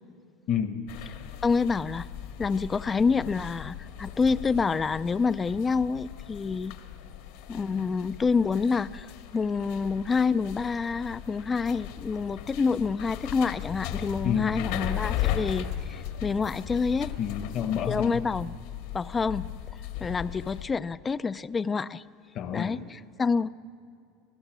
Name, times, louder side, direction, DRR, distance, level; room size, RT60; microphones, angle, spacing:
voice 1, 0.5-0.8 14.2-14.6 17.2-18.2 22.3-22.8, left 9 dB, 40° left, 8 dB, 1.0 m, -29 dB
sound 1, 0.9-20.7, left 11 dB, 70° left, 1.7 m, -37 dB
voice 2, 1.4-2.1 2.4-6.8 7.5-9.1 9.3-17.1 17.9-18.6 18.9-19.5 20.0-22.0 22.5-23.5, left 5 dB, 15° left, 16 dB, 0.4 m, -27 dB
27.0 x 16.5 x 6.1 m, 2.5 s
supercardioid pair, 140°, 0 cm